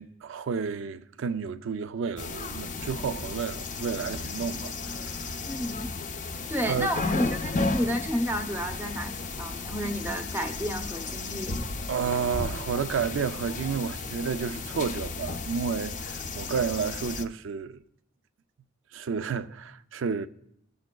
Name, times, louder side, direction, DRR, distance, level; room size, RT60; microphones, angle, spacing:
voice 1, 0.0-5.0 6.7-6.9 11.9-17.8 18.9-20.3, right 6 dB, 65° right, 0.4 m, -31 dB
sound 1, 2.2-17.2, left 3 dB, 35° left, 0.5 m, -34 dB
voice 2, 5.5-5.9 6.5-11.6, equal, 10° right, 0.7 m, -31 dB
19.0 x 7.0 x 2.2 m
head